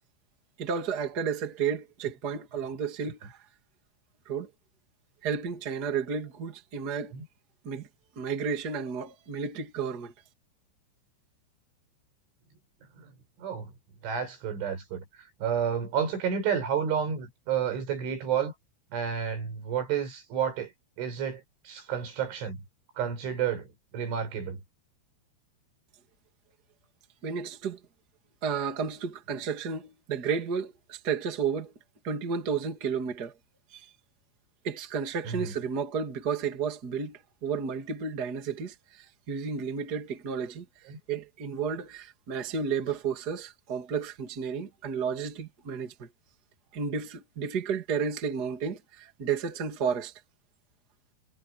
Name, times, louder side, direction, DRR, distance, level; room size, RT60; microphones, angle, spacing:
voice 1, 0.6-3.4 4.3-4.5 5.2-7.1 7.6-7.9 8.2-10.1 27.2-27.8 28.4-31.7 32.0-33.3 33.7-33.9 34.6-46.1 46.7-50.1, right 6 dB, 25° right, 2.4 m, -32 dB
voice 2, 13.4-13.7 14.0-15.0 15.4-18.5 18.9-20.7 21.0-22.6 23.0-23.7 23.9-24.6 35.3-35.5 40.9-41.0, right 8 dB, 90° right, 8.1 m, -30 dB
omnidirectional pair, 5.3 m